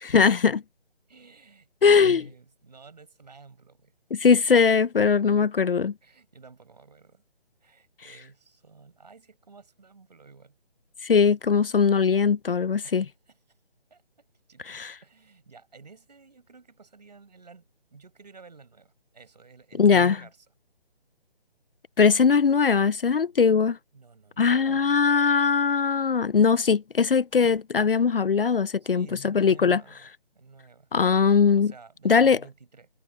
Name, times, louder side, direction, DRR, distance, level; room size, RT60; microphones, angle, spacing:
voice 1, 0.0-0.6 1.8-2.2 4.1-5.9 11.0-13.1 14.7-15.0 19.8-20.2 22.0-23.8 24.4-29.8 30.9-31.7 32.0-32.4, left 6 dB, 60° left, 0.5 m, -20 dB
voice 2, 1.1-3.9 6.0-7.2 7.6-10.6 12.8-13.4 13.9-14.0 14.5-20.5 23.9-25.0 28.8-30.9 31.5-32.9, right 4 dB, 40° right, 5.6 m, -52 dB
hypercardioid pair, 175°, 31 cm